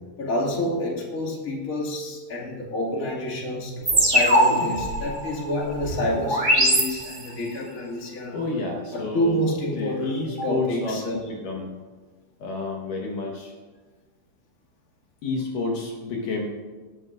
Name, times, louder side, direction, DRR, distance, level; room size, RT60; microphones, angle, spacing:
voice 1, 0.2-8.4 8.9-11.2, left 1 dB, 30° left, -3 dB, 1.5 m, -28 dB
sound 1, 3.9-7.5, equal, 40° right, 0.7 m, -22 dB
voice 2, 8.3-9.4 9.8-11.7 12.4-13.5 15.2-16.5, left 3 dB, 65° left, 0 dB, 2.3 m, -30 dB
19.5 x 13.0 x 2.6 m, 1.4 s
omnidirectional pair, 5.2 m